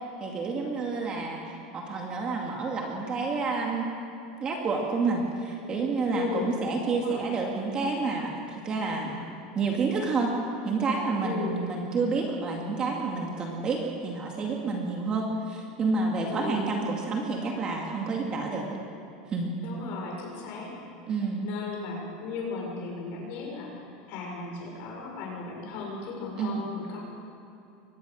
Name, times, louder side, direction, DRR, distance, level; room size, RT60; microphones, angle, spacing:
voice 1, 0.2-3.9 4.4-9.2 9.5-10.4 10.6-18.7 19.3-19.5 21.1-21.4 26.4-26.6, right 4 dB, 20° right, 0 dB, 2.3 m, -29 dB
voice 2, 6.1-6.5 6.9-7.2 11.2-11.6 16.3-16.7 19.6-20.7 21.4-27.0, left 4 dB, 45° left, -1 dB, 6.6 m, -36 dB
23.5 x 19.5 x 6.5 m, 2.8 s
supercardioid pair, 180°, 4 cm